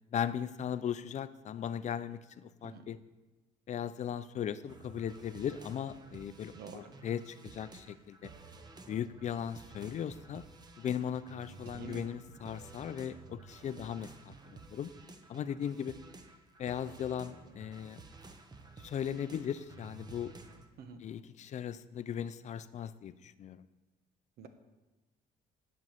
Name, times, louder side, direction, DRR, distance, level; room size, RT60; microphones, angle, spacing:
voice 1, 0.1-3.0 3.7-8.3 8.9-10.4 10.8-14.9 15.3-16.0 16.6-18.0 18.8-20.3 21.0-23.7, left 9 dB, 45° left, 14 dB, 0.5 m, -38 dB
sound 1, 4.7-20.7, right 3 dB, 25° right, 0.9 m, -52 dB
voice 2, 6.5-6.9 11.7-12.1 20.8-21.0 24.4-24.5, right 6 dB, 70° right, 8 dB, 1.1 m, -47 dB
10.0 x 5.5 x 7.9 m, 1.2 s
cardioid pair, 110°, 17 cm